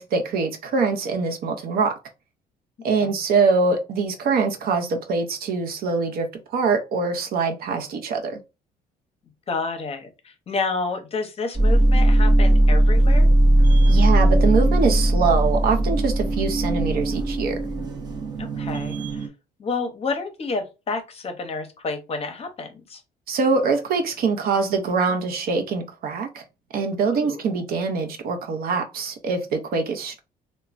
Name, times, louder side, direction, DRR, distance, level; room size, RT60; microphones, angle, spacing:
voice 1, 0.0-1.9 2.8-8.4 13.9-17.6 23.3-26.4 26.7-30.2, right 4 dB, 60° right, 0.6 m, -23 dB
voice 2, 9.5-13.3 18.4-19.3 19.6-23.0 27.1-27.4, left 4 dB, 35° left, 0.7 m, -30 dB
sound 1, 11.5-19.3, right 1 dB, 25° right, 0.6 m, -18 dB
3.0 x 2.1 x 2.4 m
cardioid pair, 110°, 17 cm